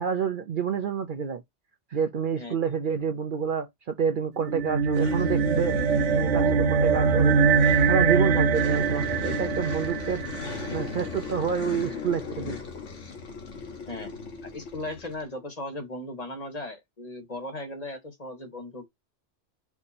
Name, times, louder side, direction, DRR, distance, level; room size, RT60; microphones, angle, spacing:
voice 1, 0.0-1.4 1.9-5.8 6.1-7.4 7.9-10.2 10.7-12.6, right 7 dB, 55° right, 0.7 m, -28 dB
sound 1, 4.4-11.1, right 5 dB, 80° right, 1.0 m, -23 dB
sound 2, 4.9-15.3, left 5 dB, 85° left, 1.4 m, -37 dB
voice 2, 14.4-18.9, left 1 dB, 35° left, 1.3 m, -37 dB
4.7 x 2.8 x 4.1 m
omnidirectional pair, 1.2 m